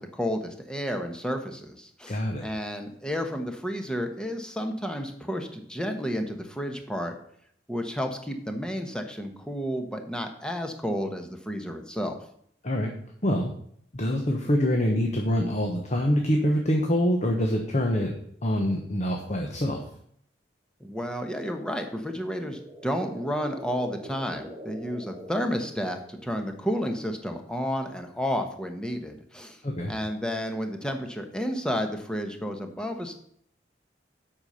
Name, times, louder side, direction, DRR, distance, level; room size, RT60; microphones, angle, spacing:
voice 1, 0.1-7.1 7.7-12.2 20.8-29.6 29.9-33.1, equal, 5° left, 5 dB, 1.0 m, -31 dB
voice 2, 2.1-2.5 12.6-12.9 13.2-13.5 13.9-18.1 18.4-19.8 29.6-29.9, equal, 40° left, 2 dB, 1.1 m, -25 dB
sound 1, 22.1-26.3, equal, 10° right, 1.9 m, -44 dB
7.9 x 5.8 x 6.7 m, 0.66 s
head